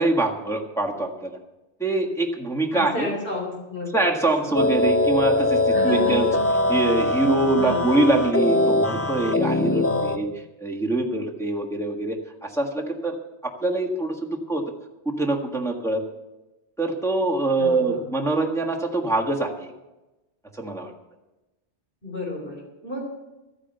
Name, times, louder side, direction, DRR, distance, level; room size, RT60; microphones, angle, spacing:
voice 1, 0.0-1.4 1.8-3.1 3.9-6.3 6.7-10.3 10.6-12.2 12.4-13.2 13.4-14.6 15.0-16.0 16.8-19.7 20.6-20.9, right 2 dB, 5° left, -1 dB, 1.6 m, -24 dB
voice 2, 2.7-4.0 4.4-4.5 5.7-6.4 7.6-7.9 9.8-10.2 17.6-18.1 22.0-23.0, left 1 dB, 50° left, -2 dB, 3.9 m, -32 dB
sound 1, 4.5-10.2, left 2 dB, 25° left, 0.3 m, -22 dB
13.0 x 9.8 x 8.0 m, 1.0 s
omnidirectional pair, 1.2 m